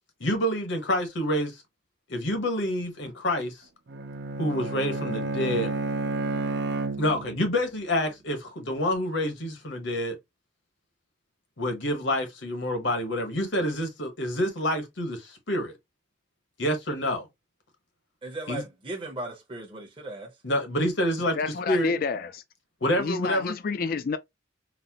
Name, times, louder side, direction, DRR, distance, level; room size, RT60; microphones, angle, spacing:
voice 1, 0.2-1.6 2.1-3.6 4.4-5.8 7.0-10.2 11.6-15.7 16.6-17.3 18.5-18.6 20.4-21.4 21.7-21.9 22.8-23.5, equal, 65° left, 1.0 m, -27 dB
Bowed string instrument, 3.9-7.5, right 3 dB, 55° right, 0.4 m, -31 dB
voice 2, 18.2-20.3, right 2 dB, 25° right, 0.8 m, -37 dB
voice 3, 21.3-22.4 23.0-24.2, left 4 dB, 45° left, 0.3 m, -29 dB
4.0 x 2.1 x 2.7 m
head